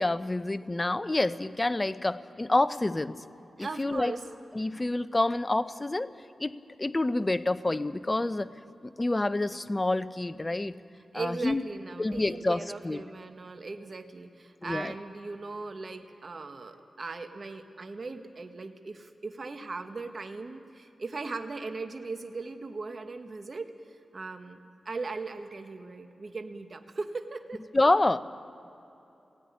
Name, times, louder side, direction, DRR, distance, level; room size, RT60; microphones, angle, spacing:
voice 1, 0.0-3.1 3.6-4.1 4.5-6.1 6.4-6.5 6.8-8.5 8.8-10.8 11.1-11.6 12.0-13.0 14.6-14.9 27.7-28.2, left 2 dB, 25° left, 12 dB, 0.7 m, -27 dB
voice 2, 3.6-4.2 11.1-23.7 24.1-24.6 24.8-27.6, right 3 dB, 50° right, 6 dB, 1.4 m, -38 dB
18.0 x 16.0 x 9.6 m, 3.0 s
cardioid pair, 65°, 0 cm